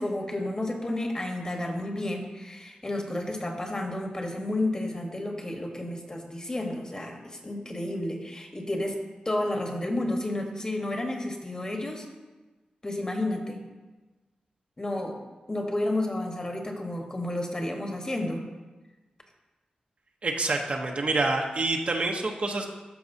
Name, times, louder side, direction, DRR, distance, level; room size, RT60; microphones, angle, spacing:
voice 1, 0.0-9.0 9.2-12.1 12.8-13.6 14.8-15.2 15.5-18.4, left 1 dB, 25° left, 2 dB, 1.2 m, -31 dB
voice 2, 20.2-22.7, right 2 dB, 55° right, 2 dB, 0.9 m, -27 dB
13.0 x 4.7 x 2.7 m, 1.2 s
cardioid pair, 70°, 3 cm